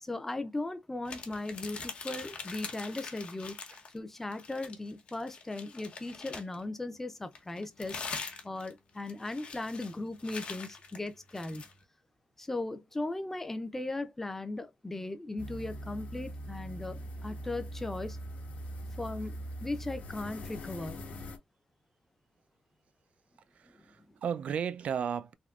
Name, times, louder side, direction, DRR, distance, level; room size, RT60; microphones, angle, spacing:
voice 1, 0.0-3.6 3.9-8.0 8.4-11.7 12.4-18.2 19.0-21.0, left 2 dB, 15° left, 0.5 m, -37 dB
sound 1, 1.0-4.0 4.3-6.6 7.3-11.7, left 5 dB, 55° left, 0.9 m, -43 dB
sound 2, 15.4-21.4, equal, 75° left, 1.0 m, -42 dB
voice 2, 23.5-25.3, right 7 dB, 65° right, 0.3 m, -34 dB
3.6 x 2.7 x 2.4 m
wide cardioid pair, 145°, 2 cm